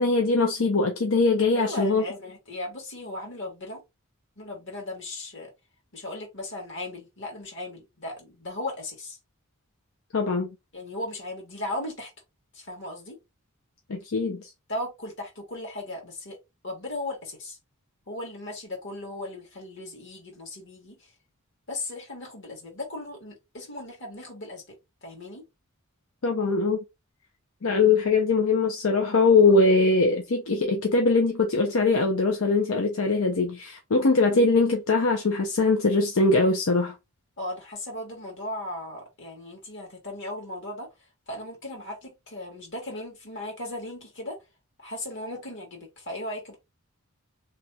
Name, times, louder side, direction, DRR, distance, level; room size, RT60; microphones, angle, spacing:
voice 1, 0.0-2.0 10.1-10.5 13.9-14.5 26.2-26.8 27.6-36.9, left 3 dB, 80° left, 0.7 m, -22 dB
voice 2, 1.5-3.8 4.4-5.5 5.9-9.2 10.7-12.1 12.5-13.2 14.7-16.4 16.6-17.6 18.1-21.1 21.7-25.4 37.4-40.9 41.3-44.4 44.8-46.6, left 1 dB, 60° left, 1.8 m, -37 dB
3.1 x 2.3 x 4.1 m
head